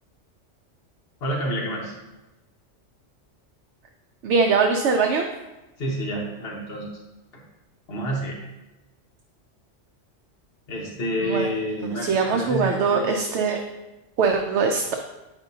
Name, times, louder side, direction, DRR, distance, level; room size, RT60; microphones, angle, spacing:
voice 1, 1.2-1.9 5.8-6.9 7.9-8.4 10.7-13.1, equal, 60° left, -2 dB, 1.1 m, -28 dB
voice 2, 4.2-5.3 11.2-11.5 12.0-13.6 14.2-14.8, right 5 dB, 70° right, 3 dB, 0.8 m, -21 dB
8.9 x 5.3 x 2.7 m, 1.1 s
omnidirectional pair, 1.2 m